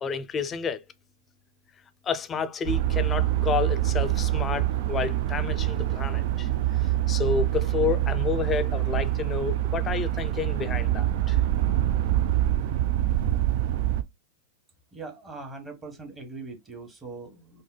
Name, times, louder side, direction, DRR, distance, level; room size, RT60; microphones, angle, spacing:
voice 1, 0.0-0.8 2.0-6.5 6.8-11.4, left 6 dB, 25° left, 0.6 m, -30 dB
sound 1, 2.7-14.0, right 13 dB, 55° right, 0.5 m, -25 dB
voice 2, 14.9-17.6, right 3 dB, 20° right, 1.2 m, -41 dB
4.8 x 2.1 x 2.3 m
hypercardioid pair, 105°, 0 cm